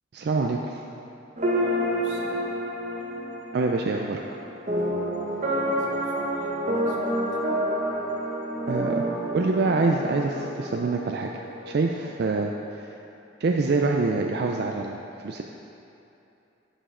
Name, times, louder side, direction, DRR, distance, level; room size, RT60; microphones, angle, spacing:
voice 1, 0.1-0.8 3.5-4.2 8.7-9.1 9.3-11.3 11.7-12.9 13.4-15.4, right 3 dB, 55° right, 1 dB, 0.4 m, -25 dB
sound 1, 1.4-12.4, equal, 40° right, 0.9 m, -29 dB
voice 2, 1.6-2.5 2.9-3.2 5.4-6.5 6.7-7.8, right 1 dB, 90° right, -1 dB, 1.1 m, -46 dB
sound 2, 6.2-11.0, left 1 dB, 10° right, 1.1 m, -41 dB
11.0 x 5.2 x 3.7 m, 2.9 s
head